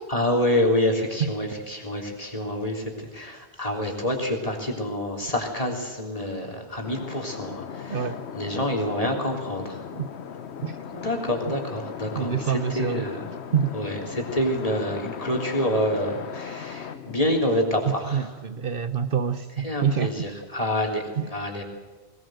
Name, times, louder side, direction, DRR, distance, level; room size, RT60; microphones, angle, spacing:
voice 1, 0.1-9.8 10.9-13.2 13.7-18.3 19.6-21.6, left 1 dB, 35° left, 3.7 m, -27 dB
sound 1, 6.8-17.4, left 7 dB, 85° left, 1.2 m, -38 dB
voice 2, 12.1-13.0 13.5-13.7 18.1-20.1 21.2-21.3, right 7 dB, 60° right, 1.0 m, -26 dB
20.0 x 19.5 x 7.9 m
omnidirectional pair, 1.1 m